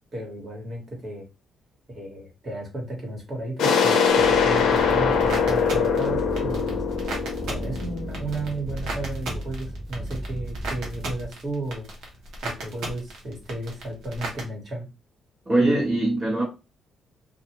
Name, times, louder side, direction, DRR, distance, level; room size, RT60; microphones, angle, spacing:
voice 1, 0.1-1.3 1.9-6.8 7.5-11.9 12.4-14.8, right 2 dB, 40° right, 1.4 m, -33 dB
sound 1, 3.6-9.1, left 6 dB, 80° left, 0.6 m, -22 dB
sound 2, 4.0-14.4, right 2 dB, 75° right, 1.0 m, -37 dB
sound 3, 4.2-11.3, right 1 dB, ahead, 0.5 m, -35 dB
voice 2, 15.5-16.4, right 2 dB, 25° right, 1.1 m, -21 dB
2.4 x 2.3 x 3.0 m
cardioid pair, 90°, 0 cm